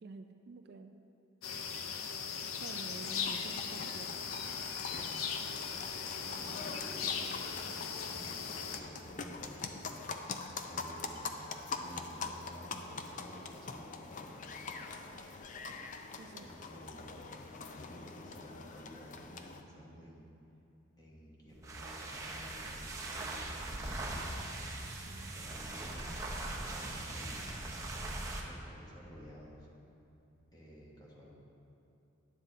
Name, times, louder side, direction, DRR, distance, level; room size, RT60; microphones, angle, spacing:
voice 1, 0.0-0.9 2.5-4.2 16.2-16.5 24.9-25.4, right 3 dB, 50° right, 7 dB, 0.3 m, -49 dB
sound 1, 1.4-8.8, left 6 dB, 85° left, 0.6 m, -39 dB
sound 2, 3.1-19.6, left 4 dB, 40° left, 0.4 m, -44 dB
voice 2, 6.1-9.8 10.6-11.3 11.6-14.6 16.4-20.3 21.0-24.5 25.2-27.7 28.4-29.7 30.5-31.3, equal, 20° left, -4 dB, 1.2 m, -53 dB
sound 3, 21.5-28.5, right 2 dB, 15° right, 0.8 m, -40 dB
10.5 x 7.4 x 4.0 m, 2.8 s
head